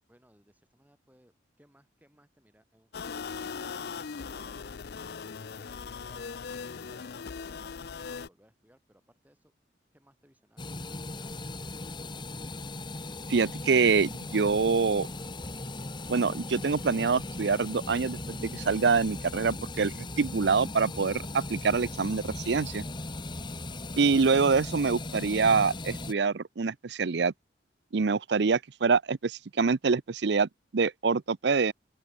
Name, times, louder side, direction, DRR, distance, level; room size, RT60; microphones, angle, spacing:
voice 1, 0.1-5.1 5.6-6.4 6.9-9.5 9.9-12.3, equal, 10° right, 7.6 m, -64 dB
sound 1, 2.9-8.3, left 5 dB, 60° left, 0.5 m, -39 dB
sound 2, 10.6-26.1, left 2 dB, 25° left, 1.4 m, -38 dB
voice 2, 13.3-15.1 16.1-22.8 24.0-27.3 27.9-30.5 30.7-31.7, right 5 dB, 70° right, 0.6 m, -25 dB
open air
head